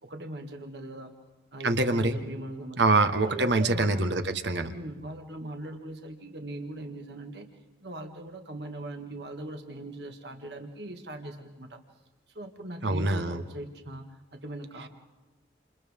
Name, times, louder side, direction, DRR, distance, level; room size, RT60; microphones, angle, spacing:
voice 1, 0.0-1.1 1.5-2.9 3.2-4.1 4.7-7.5 7.8-11.8 12.3-14.9, right 1 dB, 70° right, 4 dB, 1.9 m, -40 dB
voice 2, 1.6-2.1 2.8-4.7 12.8-13.4, right 2 dB, 90° right, 7 dB, 1.4 m, -24 dB
28.5 x 28.5 x 3.7 m, 1.2 s
head